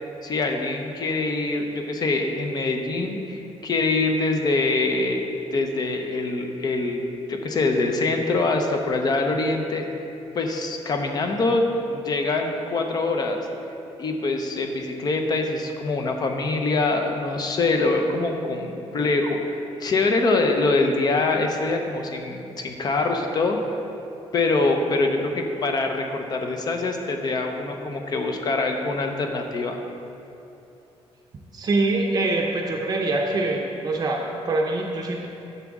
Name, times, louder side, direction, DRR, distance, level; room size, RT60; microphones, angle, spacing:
voice 1, 0.2-5.2 5.5-7.0 7.3-9.8 10.3-13.4 14.0-23.6 24.3-29.8, left 3 dB, 40° left, 4 dB, 0.7 m, -24 dB
voice 2, 31.5-35.3, right 2 dB, 35° right, -1 dB, 0.6 m, -24 dB
9.8 x 7.0 x 3.6 m, 2.9 s
cardioid pair, 170°, 11 cm